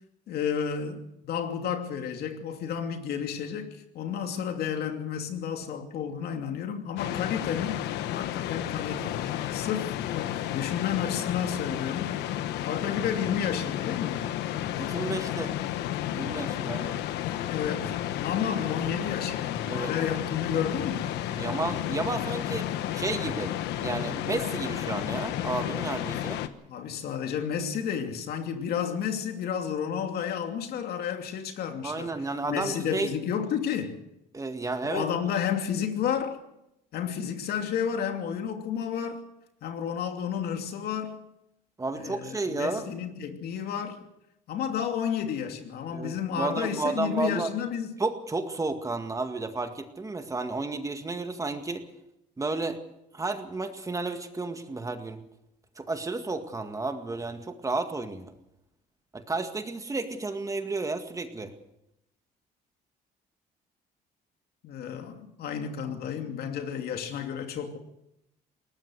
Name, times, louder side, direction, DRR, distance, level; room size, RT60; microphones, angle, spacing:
voice 1, 0.3-7.8 8.1-9.2 9.5-12.1 12.6-14.3 17.5-21.2 26.7-32.1 32.4-34.0 34.8-36.4 36.9-39.2 39.6-41.2 41.9-44.0 44.5-47.9 64.6-67.8, left 8 dB, 70° left, 2.8 m, -31 dB
sound 1, 7.0-26.5, left 12 dB, 90° left, 1.3 m, -32 dB
voice 2, 14.7-15.5 16.1-17.0 19.7-19.9 21.3-26.4 31.8-33.2 34.3-35.1 41.8-42.9 45.9-47.5 48.0-51.9 52.4-52.8 53.1-55.2 55.8-58.3 59.1-61.5, right 3 dB, 20° right, 2.0 m, -32 dB
21.5 x 19.0 x 6.4 m
cardioid pair, 110°, 17 cm